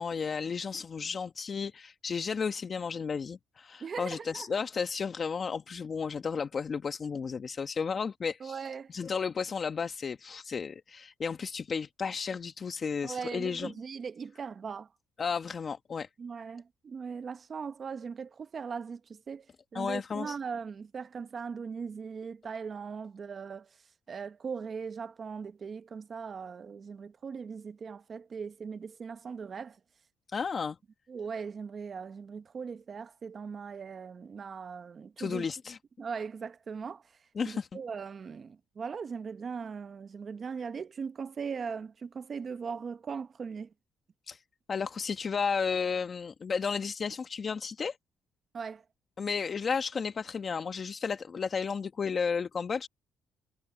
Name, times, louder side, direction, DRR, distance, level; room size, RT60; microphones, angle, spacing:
voice 1, 0.0-8.6 8.9-13.7 15.2-16.1 19.7-20.4 30.3-30.8 35.2-35.8 37.4-37.7 44.3-44.4 44.7-48.0 49.2-52.9, left 5 dB, 40° left, 1.2 m, -33 dB
voice 2, 3.8-4.5 8.4-8.9 13.0-14.9 16.2-19.5 19.7-23.8 24.1-29.8 31.1-35.4 36.0-37.2 37.5-43.7 48.5-48.8, right 6 dB, 45° right, 0.9 m, -39 dB
cardioid pair, 85°, 0 cm